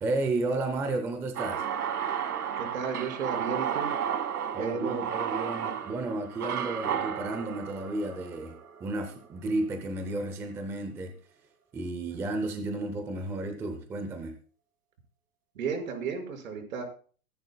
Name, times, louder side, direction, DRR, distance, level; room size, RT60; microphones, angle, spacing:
voice 1, 0.0-1.7 4.5-8.5 8.8-11.1 11.7-14.4, right 2 dB, 5° right, 7 dB, 0.5 m, -32 dB
sound 1, 1.4-9.5, right 8 dB, 85° right, 1.5 m, -33 dB
voice 2, 2.6-3.9 4.6-5.0 15.5-16.8, right 6 dB, 65° right, 4 dB, 5.9 m, -33 dB
22.5 x 11.0 x 2.3 m, 0.40 s
hypercardioid pair, 145°, 44 cm